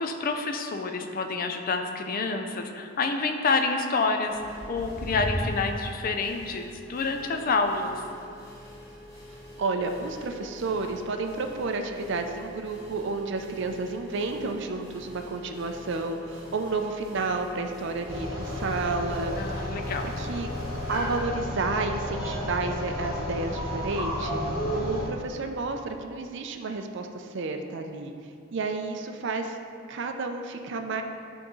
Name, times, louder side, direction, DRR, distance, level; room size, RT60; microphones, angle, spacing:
voice 1, 0.0-4.4 4.7-8.1 19.4-20.1, left 4 dB, 40° left, 5 dB, 0.4 m, -28 dB
sound 1, 4.3-21.2, equal, 15° left, 1.1 m, -42 dB
voice 2, 9.6-19.8 20.2-20.5 20.9-28.1 28.5-29.6 29.9-31.0, right 3 dB, 55° right, 5 dB, 0.4 m, -31 dB
sound 2, 18.1-25.1, left 1 dB, 10° right, 1.5 m, -32 dB
10.0 x 3.6 x 3.1 m, 2.4 s
head